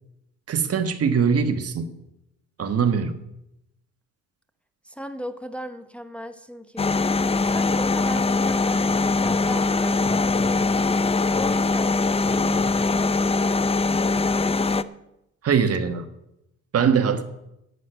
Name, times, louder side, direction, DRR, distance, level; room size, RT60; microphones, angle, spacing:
voice 1, 0.5-1.9 2.6-3.2 15.4-16.1 16.7-17.2, right 6 dB, 50° right, 9 dB, 1.4 m, -22 dB
voice 2, 4.8-6.9 7.4-10.6 11.4-13.5, equal, 5° left, 8 dB, 1.0 m, -37 dB
sound 1, 6.8-14.8, left 3 dB, 20° left, 0.5 m, -22 dB
11.0 x 8.3 x 9.0 m, 0.86 s
cardioid pair, 90°, 30 cm